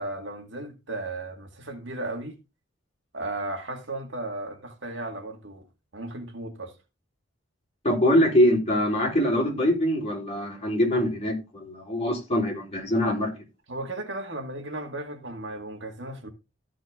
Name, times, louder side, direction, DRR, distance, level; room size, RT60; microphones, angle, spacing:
voice 1, 0.0-2.4 3.1-5.7 5.9-6.7 13.7-16.3, right 2 dB, 60° right, 2.1 m, -35 dB
voice 2, 7.8-13.3, equal, 30° left, 4.1 m, -23 dB
13.5 x 6.2 x 3.7 m
head